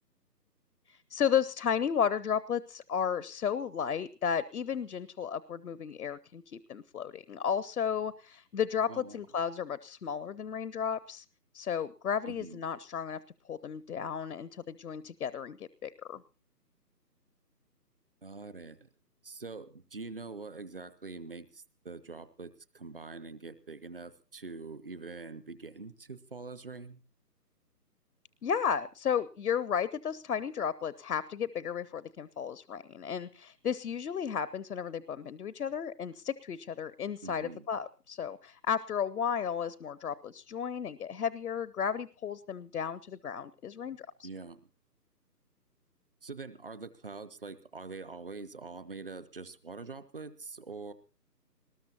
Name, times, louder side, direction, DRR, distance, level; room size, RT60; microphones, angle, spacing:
voice 1, 0.9-11.2 11.5-13.2 13.5-16.2 28.4-44.3, left 7 dB, 65° left, 18 dB, 0.7 m, -33 dB
voice 2, 8.9-9.2 12.3-12.6 18.2-18.9 19.2-27.0 37.2-37.6 44.2-44.6 46.2-50.9, right 3 dB, 35° right, 14 dB, 0.7 m, -44 dB
22.0 x 19.5 x 2.9 m, 0.33 s
figure-of-eight pair, 155°, 49 cm